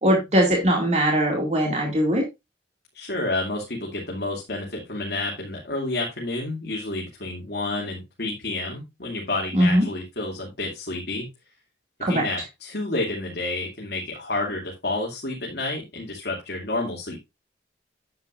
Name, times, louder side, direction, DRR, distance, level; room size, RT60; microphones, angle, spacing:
voice 1, 0.0-2.2 9.5-9.8 12.0-12.3, equal, 40° right, 0 dB, 2.3 m, -20 dB
voice 2, 2.9-11.3 12.1-17.2, left 2 dB, 65° left, -2 dB, 2.5 m, -30 dB
9.5 x 8.4 x 2.5 m, 0.23 s
head